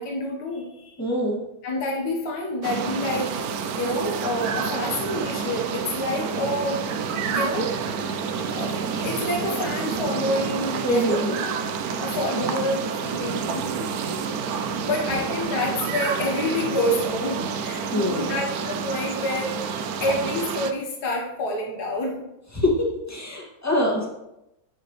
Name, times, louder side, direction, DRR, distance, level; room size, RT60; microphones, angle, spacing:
voice 1, 0.0-1.0 1.6-3.4 3.8-6.8 7.3-7.7 8.3-11.2 11.7-14.2 14.9-22.3, left 1 dB, 70° left, -1 dB, 1.9 m, -28 dB
voice 2, 1.0-1.4 10.8-11.4 17.9-18.3 22.5-24.1, left 1 dB, 10° left, -3 dB, 2.0 m, -24 dB
sound 1, 2.6-20.7, right 6 dB, 70° right, 1.1 m, -29 dB
10.0 x 6.6 x 3.3 m, 0.87 s
omnidirectional pair, 1.8 m